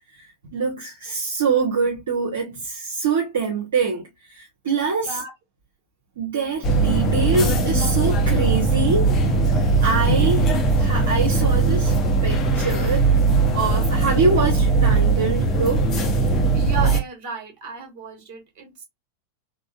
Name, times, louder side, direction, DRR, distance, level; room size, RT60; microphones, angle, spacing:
voice 1, 0.5-5.2 6.2-9.1 9.8-10.5 10.8-11.9 12.2-13.1 13.5-15.9, right 4 dB, 60° right, 0.7 m, -24 dB
sound 1, 6.6-17.0, right 3 dB, 25° left, 0.7 m, -19 dB
voice 2, 16.5-18.8, right 5 dB, 45° right, 1.2 m, -34 dB
3.6 x 2.1 x 2.4 m
figure-of-eight pair, 90°, 0 cm